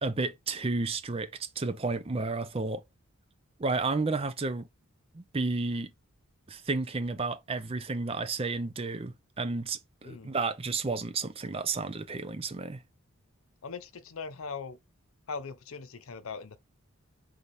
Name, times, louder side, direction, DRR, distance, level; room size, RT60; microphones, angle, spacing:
voice 1, 0.0-2.8 3.6-4.7 5.1-5.9 6.5-12.8, right 3 dB, 25° right, 0.5 m, -32 dB
voice 2, 13.6-14.8 15.3-16.6, left 5 dB, 75° left, 0.6 m, -40 dB
3.6 x 3.4 x 4.1 m
head